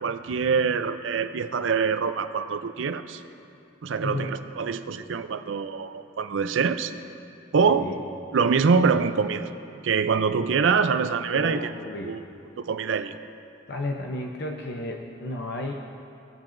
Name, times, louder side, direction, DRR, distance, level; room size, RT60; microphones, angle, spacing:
voice 1, 0.0-3.2 3.8-6.9 7.5-7.9 8.3-9.5 9.8-11.7 12.0-12.2 12.6-13.2, right 5 dB, 75° right, 11 dB, 0.4 m, -24 dB
voice 2, 4.0-4.4 7.7-8.0 11.3-12.2 13.7-15.7, left 2 dB, 55° left, 1 dB, 0.6 m, -33 dB
18.0 x 7.4 x 2.6 m, 2.7 s
head